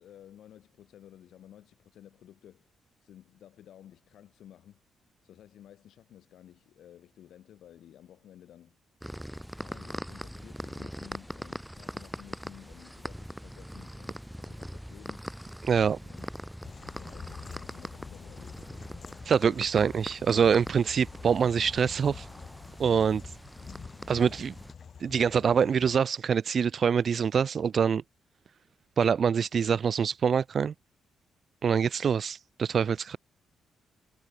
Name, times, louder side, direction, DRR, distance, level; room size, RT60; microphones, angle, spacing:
voice 1, 0.0-4.8 5.2-8.8 9.5-15.3 16.0-16.3 16.9-18.7 19.5-19.6, left 11 dB, 75° left, 5.9 m, -54 dB
sound 1, 9.0-24.7, equal, ahead, 1.7 m, -42 dB
voice 2, 15.6-16.0 19.2-22.3 22.8-23.2 24.1-24.5 25.0-28.0 29.0-30.7 31.6-33.2, right 7 dB, 50° right, 0.6 m, -25 dB
sound 2, 16.6-26.0, left 6 dB, 45° left, 1.2 m, -47 dB
cardioid pair, 110°, 0 cm